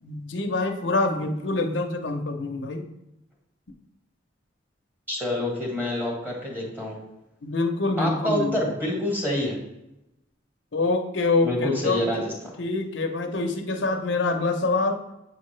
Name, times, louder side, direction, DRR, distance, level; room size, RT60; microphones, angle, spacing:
voice 1, 0.0-2.8 7.4-8.6 10.7-12.0 12.6-15.0, left 3 dB, 80° left, 4 dB, 0.8 m, -25 dB
voice 2, 5.1-7.0 8.0-9.6 11.4-12.3, left 1 dB, 10° right, -2 dB, 1.6 m, -27 dB
8.1 x 4.7 x 3.2 m, 0.89 s
head